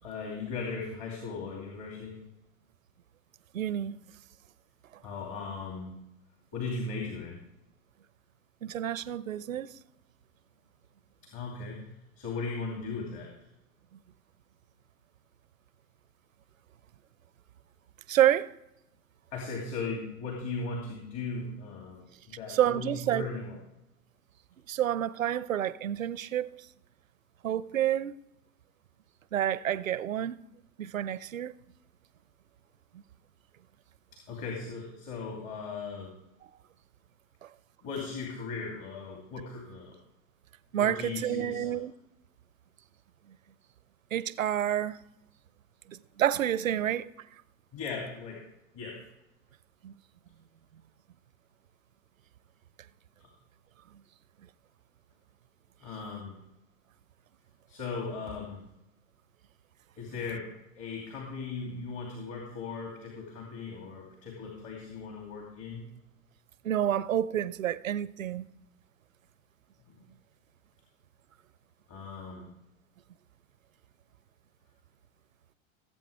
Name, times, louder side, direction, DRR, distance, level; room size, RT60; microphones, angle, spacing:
voice 1, 0.0-2.1 5.0-5.9 6.5-7.4 11.3-11.9 12.2-13.3 19.3-22.1 22.4-23.6 34.3-36.1 37.8-39.9 40.7-41.8 47.7-48.4 48.7-49.0 53.2-53.3 55.8-56.4 57.7-58.6 60.0-60.5 60.7-65.9 71.9-72.5, left 4 dB, 45° left, 2.7 m, -38 dB
voice 2, 3.5-4.0 8.6-9.7 18.1-18.5 22.5-23.3 24.7-26.6 27.4-28.1 29.3-30.4 30.8-31.5 37.4-37.5 40.7-41.9 44.1-45.0 45.9-47.1 49.8-49.9 66.6-68.4, right 11 dB, 80° right, 0.6 m, -29 dB
18.0 x 8.0 x 3.4 m
figure-of-eight pair, 85°, 39 cm